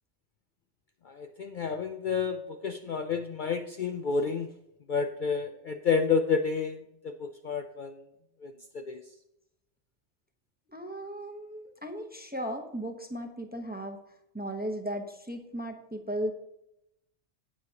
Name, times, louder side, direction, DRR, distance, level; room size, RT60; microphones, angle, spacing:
voice 1, 1.0-4.5 4.9-8.0 8.4-9.1, left 5 dB, 55° left, 7 dB, 0.6 m, -30 dB
voice 2, 10.7-14.0 14.3-16.3, right 1 dB, 10° right, 5 dB, 0.7 m, -36 dB
17.5 x 6.2 x 2.8 m, 0.84 s
omnidirectional pair, 1.2 m